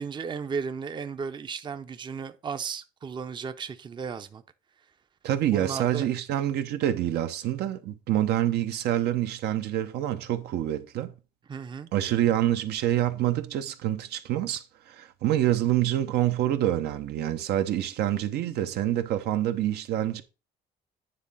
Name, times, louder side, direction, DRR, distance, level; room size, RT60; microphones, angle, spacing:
voice 1, 0.0-4.4 5.5-6.1 11.5-11.9, right 6 dB, 25° right, 0.6 m, -35 dB
voice 2, 5.2-11.1 11.9-20.2, right 12 dB, 75° right, 1.0 m, -26 dB
9.7 x 3.7 x 5.5 m
cardioid pair, 110°, 17 cm